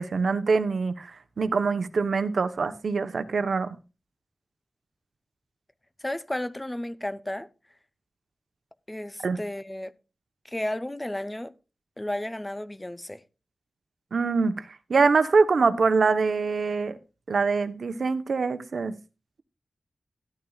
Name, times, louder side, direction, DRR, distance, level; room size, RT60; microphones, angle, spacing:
voice 1, 0.0-3.8 9.2-9.4 14.1-17.0 17.3-18.9, right 4 dB, 75° right, 1.0 m, -24 dB
voice 2, 6.0-7.5 8.9-9.9 10.4-11.5 12.0-13.2, left 1 dB, 15° left, 0.7 m, -33 dB
13.0 x 13.0 x 2.4 m
wide cardioid pair, 115°, 0 cm